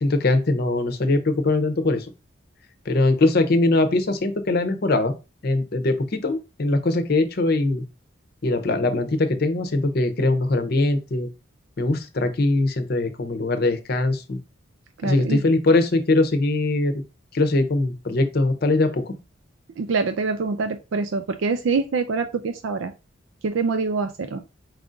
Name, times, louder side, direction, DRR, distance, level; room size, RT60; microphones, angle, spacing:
voice 1, 0.0-2.1 2.9-5.1 5.4-7.8 8.4-11.3 11.8-14.4 15.0-17.0 17.3-19.2, left 2 dB, 55° left, 8 dB, 0.7 m, -21 dB
voice 2, 15.0-15.4 19.8-22.9 23.4-24.4, right 4 dB, 85° right, 9 dB, 0.4 m, -25 dB
4.7 x 2.5 x 3.7 m, 0.28 s
head